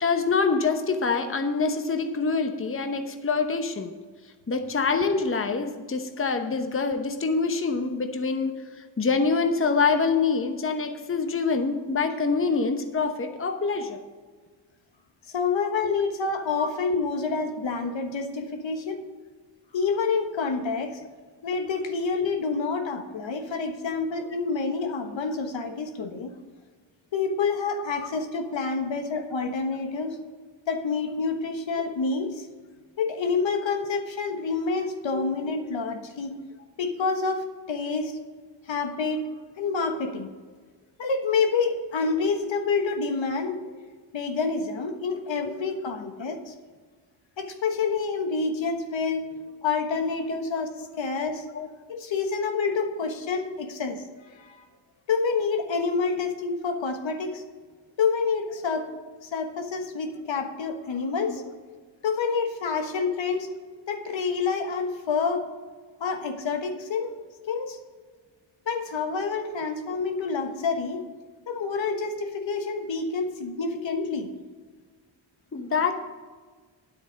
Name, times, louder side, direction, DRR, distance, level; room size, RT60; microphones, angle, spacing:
voice 1, 0.0-3.9 4.5-14.0 15.8-15.9 16.6-16.7 35.1-35.2 50.3-50.4 51.5-51.7 61.3-61.4 75.5-75.9, left 4 dB, 25° left, 6 dB, 1.0 m, -25 dB
voice 2, 15.3-19.0 19.7-21.0 21.4-26.3 27.1-30.2 30.7-32.5 33.0-36.4 36.8-38.2 38.7-39.3 39.6-40.3 41.0-43.6 44.1-46.5 47.4-49.3 49.6-50.7 51.0-51.4 51.9-54.0 54.3-54.6 55.1-57.4 58.0-58.9 59.2-61.4 62.0-63.5 63.9-65.5 66.0-67.1 67.5-67.8 68.7-71.1 71.5-74.3, left 4 dB, 70° left, 5 dB, 1.4 m, -28 dB
9.7 x 8.1 x 5.2 m, 1.5 s
cardioid pair, 65°, 47 cm